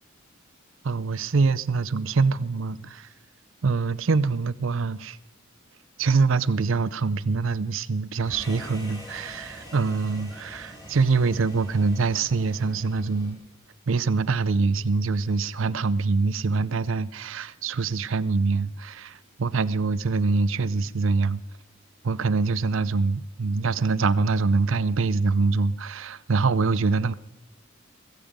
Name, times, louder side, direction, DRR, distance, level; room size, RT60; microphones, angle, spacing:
voice 1, 0.8-3.1 3.6-5.2 6.0-13.4 13.9-21.4 22.0-27.1, right 4 dB, 65° right, 0.5 m, -24 dB
sound 1, 8.2-13.3, equal, 20° left, 5.3 m, -44 dB
16.0 x 15.0 x 5.1 m
head